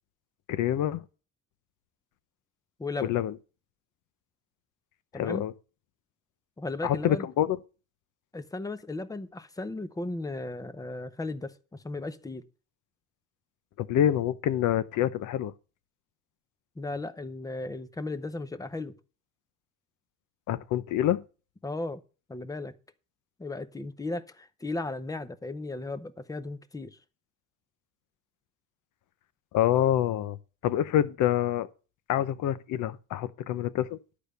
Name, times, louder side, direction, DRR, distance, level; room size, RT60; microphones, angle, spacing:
voice 1, 0.5-1.0 3.0-3.3 5.1-5.5 6.8-7.6 13.8-15.5 20.5-21.2 29.5-30.4 30.6-31.7 32.1-34.0, left 11 dB, 70° left, 0.9 m, -26 dB
voice 2, 2.8-3.1 5.1-5.5 6.6-7.3 8.3-12.5 16.8-19.0 21.6-22.0 22.3-22.7 23.4-27.0, left 2 dB, 10° left, 0.7 m, -36 dB
11.5 x 5.0 x 6.8 m
cardioid pair, 155°, 32 cm